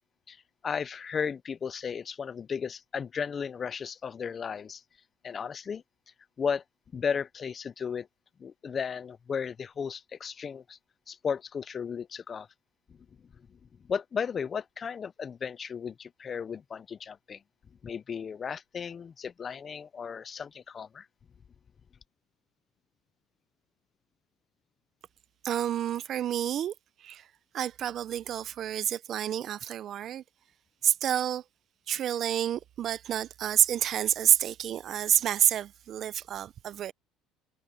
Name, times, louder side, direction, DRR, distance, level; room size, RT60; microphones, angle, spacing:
voice 1, 0.6-4.8 5.2-5.8 6.4-6.6 6.9-8.1 8.4-10.8 11.1-12.5 13.9-17.4 17.8-21.1, left 6 dB, 25° left, 0.4 m, -34 dB
voice 2, 25.4-26.7 27.0-27.2 27.5-30.2 30.8-31.4 31.9-36.9, right 10 dB, 35° right, 0.5 m, -28 dB
cardioid pair, 160°, 0 cm